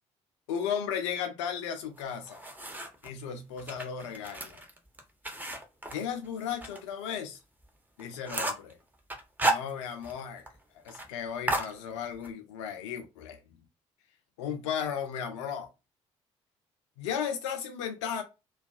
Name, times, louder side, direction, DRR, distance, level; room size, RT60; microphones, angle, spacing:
voice 1, 0.5-2.4 3.0-4.6 5.9-7.4 8.0-8.8 9.4-10.4 10.7-13.4 14.4-15.7 17.0-18.2, left 8 dB, 70° left, 0.5 m, -35 dB
sound 1, 2.0-3.1 3.6-6.8 7.1-7.2 7.6-7.7 8.0-8.7 9.1-10.2 10.5-10.6 10.9-11.1 11.5-12.3, right 2 dB, 10° right, 0.6 m, -33 dB
2.4 x 2.2 x 2.3 m
figure-of-eight pair, 45°, 16 cm